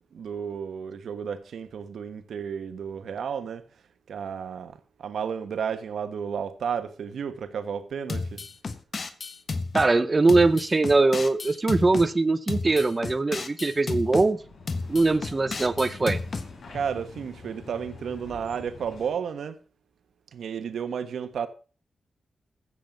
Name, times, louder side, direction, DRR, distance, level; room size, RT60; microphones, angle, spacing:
voice 1, 0.1-3.6 4.1-8.4 16.7-19.6 20.3-21.5, right 7 dB, 80° right, 1.3 m, -32 dB
sound 1, 8.1-9.9 10.3-12.1 12.5-14.3 14.7-16.5, left 3 dB, 40° left, 1.2 m, -32 dB
voice 2, 9.7-14.4 14.9-16.2, right 3 dB, 25° right, 0.7 m, -22 dB
sound 2, 14.2-19.3, left 3 dB, 80° left, 5.4 m, -45 dB
15.5 x 7.5 x 5.2 m
wide cardioid pair, 155°, 0 cm